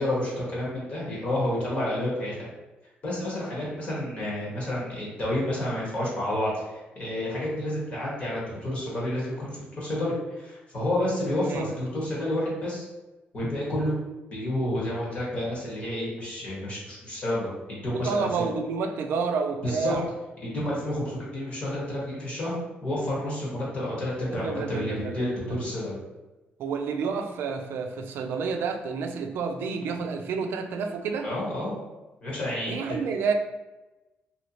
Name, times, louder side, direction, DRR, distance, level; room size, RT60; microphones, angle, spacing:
voice 1, 0.0-2.5 3.0-12.8 13.3-13.9 14.3-18.4 19.6-20.0 20.5-22.5 22.8-26.0 31.2-31.8 32.2-33.0, left 1 dB, 35° left, -6 dB, 1.2 m, -30 dB
voice 2, 17.9-20.1 24.3-25.6 26.6-31.3 32.7-33.3, right 5 dB, 75° right, 5 dB, 0.3 m, -29 dB
3.1 x 2.7 x 2.8 m, 1.1 s
cardioid pair, 165°, 4 cm